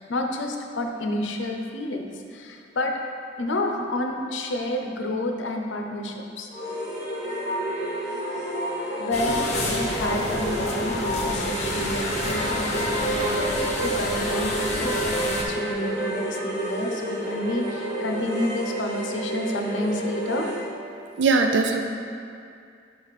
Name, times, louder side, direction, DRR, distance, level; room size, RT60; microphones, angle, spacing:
voice 1, 0.0-2.9 3.4-6.5 9.0-13.5 13.8-20.5, left 1 dB, 75° left, 3 dB, 0.6 m, -29 dB
sound 1, 6.5-20.7, right 1 dB, 40° right, 1.0 m, -29 dB
sound 2, 9.1-15.4, left 2 dB, 35° left, 0.8 m, -29 dB
voice 2, 21.2-21.8, right 4 dB, 65° right, 4 dB, 0.4 m, -20 dB
6.1 x 4.8 x 4.1 m, 2.4 s
head